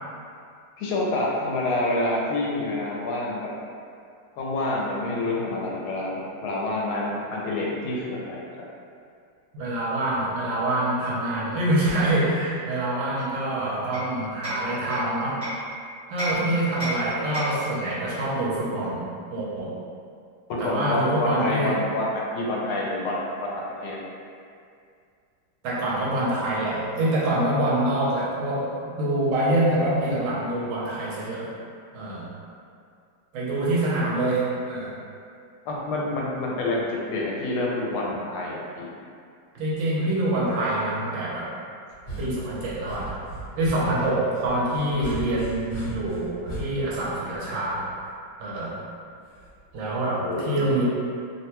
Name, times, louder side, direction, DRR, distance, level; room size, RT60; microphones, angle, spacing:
voice 1, 0.8-3.5 4.4-8.5 16.4-16.5 20.5-23.3 23.8-24.0 35.7-38.8 50.2-50.7, left 2 dB, 85° left, -3 dB, 1.5 m, -27 dB
voice 2, 9.5-15.4 16.1-19.0 19.3-19.7 20.6-21.8 25.6-31.5 31.9-32.3 33.3-34.9 39.5-41.5 42.2-43.2 43.6-47.8 48.4-48.8 49.7-50.8, right 1 dB, 70° right, -7 dB, 1.4 m, -25 dB
Hammer, 13.2-15.7 16.2-17.7, equal, 10° left, 0.7 m, -33 dB
sound 1, 41.9-48.0 49.4-49.8, right 1 dB, 55° left, 1.4 m, -37 dB
3.5 x 2.2 x 2.9 m, 2.3 s
omnidirectional pair, 2.3 m